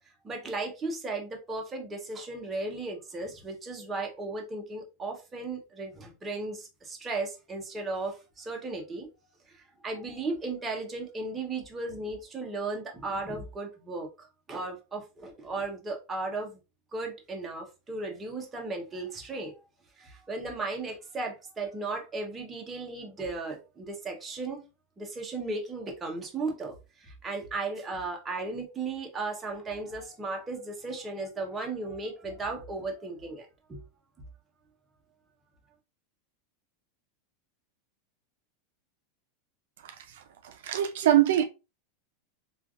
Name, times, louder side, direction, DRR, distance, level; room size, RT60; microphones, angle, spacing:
voice 1, 0.2-9.1 9.5-16.6 16.9-19.5 20.0-24.6 25.0-26.7 27.0-33.8, right 3 dB, 15° right, 0.8 m, -36 dB
voice 2, 40.4-41.4, right 12 dB, 80° right, 0.4 m, -23 dB
3.2 x 2.3 x 2.4 m
supercardioid pair, 135°, 0 cm